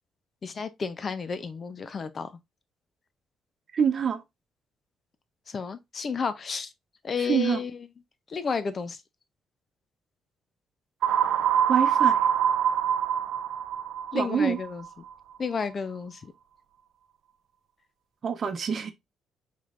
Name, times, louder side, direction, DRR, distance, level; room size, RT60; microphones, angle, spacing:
voice 1, 0.4-2.3 5.5-6.7 7.0-7.9 8.3-9.0 14.1-14.8 15.4-16.3, left 5 dB, 45° left, 0.5 m, -31 dB
voice 2, 3.7-4.2 7.3-7.6 11.7-12.2 14.1-14.6 18.2-18.9, right 7 dB, 50° right, 0.8 m, -25 dB
sound 1, 11.0-14.9, right 9 dB, 80° right, 0.4 m, -24 dB
5.2 x 3.3 x 2.5 m
cardioid pair, 90°, 0 cm